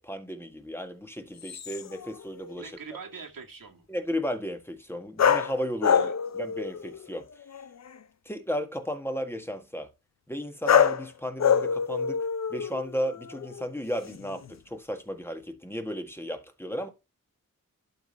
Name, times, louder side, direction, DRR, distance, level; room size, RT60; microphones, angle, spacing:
voice 1, 0.0-2.7 3.9-7.3 8.2-9.9 10.3-16.9, equal, 5° left, 1.7 m, -34 dB
sound 1, 1.4-2.5 5.2-7.1 7.3-8.0 10.7-11.1 11.4-13.7 14.0-14.5, left 7 dB, 50° left, 0.6 m, -26 dB
voice 2, 2.6-3.9 5.9-6.1, right 5 dB, 70° right, 2.1 m, -42 dB
12.0 x 3.9 x 4.0 m
cardioid pair, 65°, 35 cm